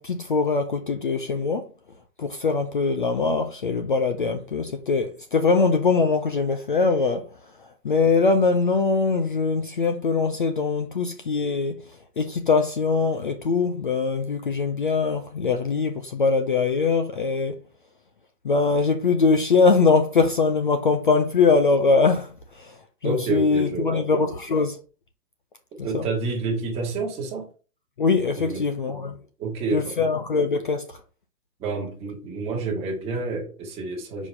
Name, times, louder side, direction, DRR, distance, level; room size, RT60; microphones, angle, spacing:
voice 1, 0.0-1.7 2.2-7.2 7.8-11.7 12.2-17.5 18.4-22.3 22.6-22.7 23.0-24.8 25.9-26.1 28.0-29.2 29.7-30.8, left 4 dB, 35° left, 0.5 m, -22 dB
voice 2, 23.0-24.0 25.8-27.5 28.3-28.7 29.4-30.1 31.6-34.3, right 3 dB, 15° right, 1.3 m, -29 dB
5.0 x 4.0 x 5.5 m
hypercardioid pair, 155°, 48 cm